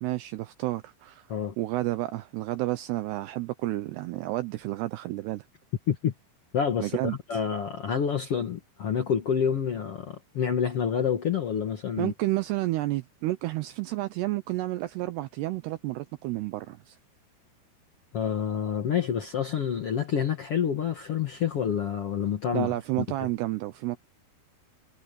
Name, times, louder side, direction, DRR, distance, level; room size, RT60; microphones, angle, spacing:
voice 1, 0.0-1.3 1.6-5.5 6.8-7.4 12.0-17.0 22.5-24.0, right 17 dB, 80° right, 2.5 m, -31 dB
voice 2, 6.5-12.1 18.1-23.0, left 8 dB, 80° left, 1.3 m, -28 dB
omnidirectional pair, 5.3 m